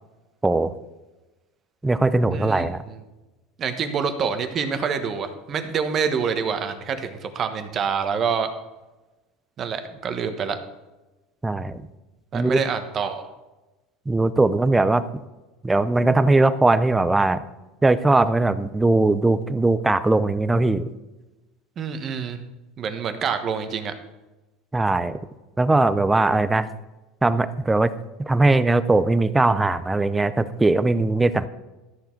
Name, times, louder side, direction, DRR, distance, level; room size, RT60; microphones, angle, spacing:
voice 1, 0.4-0.7 1.8-2.8 11.4-11.9 12.3-12.6 14.1-15.0 15.6-17.4 17.8-20.8 24.7-25.2 25.6-26.7 27.2-27.9 28.2-31.5, right 2 dB, 10° right, 14 dB, 0.5 m, -20 dB
voice 2, 2.3-3.0 3.6-8.5 9.6-10.6 12.3-13.2 21.8-22.4 22.8-23.9, right 6 dB, 30° right, 8 dB, 1.2 m, -26 dB
13.0 x 7.1 x 4.5 m, 1.1 s
supercardioid pair, 145°, 0 cm